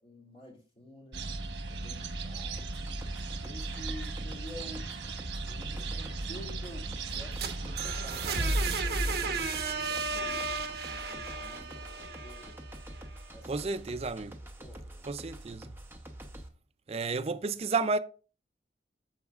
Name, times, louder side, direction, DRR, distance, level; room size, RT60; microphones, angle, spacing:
voice 1, 0.0-1.4 1.7-2.7 3.4-4.9 5.5-12.6 13.3-13.6 14.6-15.1, left 1 dB, 30° left, 2.7 m, -50 dB
sound 1, 1.1-8.9, right 3 dB, 85° right, 1.1 m, -37 dB
sound 2, 2.6-16.5, right 1 dB, 15° right, 0.9 m, -47 dB
sound 3, 7.1-13.0, right 3 dB, 60° right, 1.1 m, -33 dB
voice 2, 13.5-14.4 15.0-15.7 16.9-18.0, right 4 dB, 35° right, 0.4 m, -31 dB
13.0 x 4.8 x 2.4 m
head